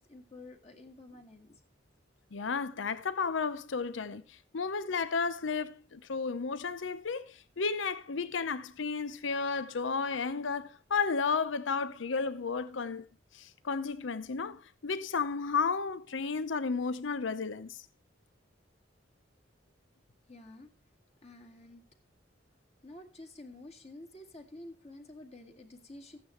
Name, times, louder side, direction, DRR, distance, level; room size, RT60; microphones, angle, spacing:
voice 1, 0.0-1.6 20.3-20.7 21.2-21.8 22.8-26.2, left 2 dB, 35° left, 2.0 m, -50 dB
voice 2, 2.3-13.1 13.3-17.8, left 5 dB, 85° left, 0.7 m, -33 dB
14.5 x 9.4 x 3.2 m
head